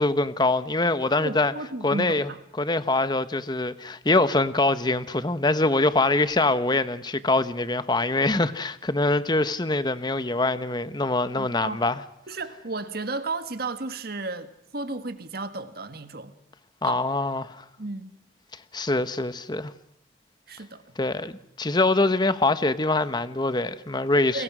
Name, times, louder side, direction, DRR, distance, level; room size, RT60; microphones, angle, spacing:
voice 1, 0.0-1.5 1.8-2.3 2.6-12.0 16.8-17.6 18.7-19.7 21.0-21.3 21.6-24.4, left 2 dB, 25° left, 1.0 m, -24 dB
voice 2, 1.2-2.4 11.4-11.8 12.3-16.3 16.9-17.0 17.8-18.1 20.5-20.8 24.3-24.4, right 3 dB, 55° right, 1.6 m, -33 dB
29.0 x 22.5 x 6.2 m
head